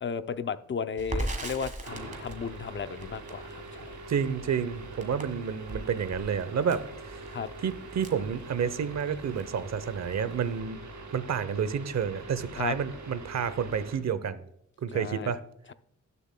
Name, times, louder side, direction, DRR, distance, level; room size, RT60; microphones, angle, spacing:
voice 1, 0.0-3.9 7.3-7.5 12.6-12.8 14.9-15.3, left 6 dB, 40° left, 12 dB, 0.5 m, -34 dB
Crackle, 1.0-9.0 9.4-9.5 9.8-10.6, right 1 dB, 25° right, 1.5 m, -39 dB
sound 1, 1.8-14.0, right 2 dB, 85° right, 3.2 m, -44 dB
voice 2, 4.1-7.2 7.6-10.8 11.1-14.4 14.8-15.4, right 7 dB, 65° right, 14 dB, 0.8 m, -30 dB
19.0 x 6.9 x 2.2 m, 0.75 s
wide cardioid pair, 135°, 29 cm